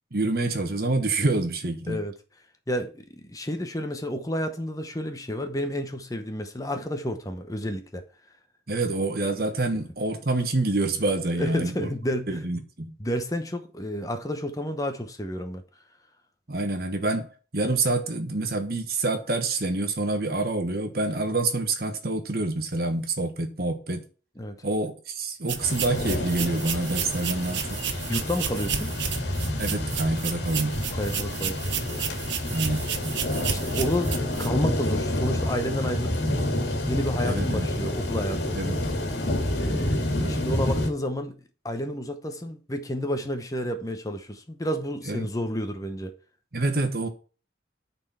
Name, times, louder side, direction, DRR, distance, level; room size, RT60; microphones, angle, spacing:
voice 1, 0.1-2.0 8.7-11.9 12.3-12.9 16.5-17.3 17.5-24.0 24.6-27.8 29.6-30.8 32.5-32.8 37.2-37.7 38.5-38.8 40.2-40.4 45.1-45.3 46.5-47.1, right 2 dB, 55° right, 1.4 m, -27 dB
voice 2, 2.7-8.0 9.7-9.8 11.3-12.4 13.0-15.6 24.4-24.6 28.1-28.9 30.9-31.8 33.3-36.6 36.9-38.6 39.6-41.4 41.6-46.2, equal, 20° left, 0.9 m, -31 dB
sound 1, 25.5-34.5, right 8 dB, 80° right, 0.9 m, -32 dB
sound 2, 25.6-40.9, left 1 dB, 65° left, 2.1 m, -28 dB
9.7 x 4.4 x 5.7 m
head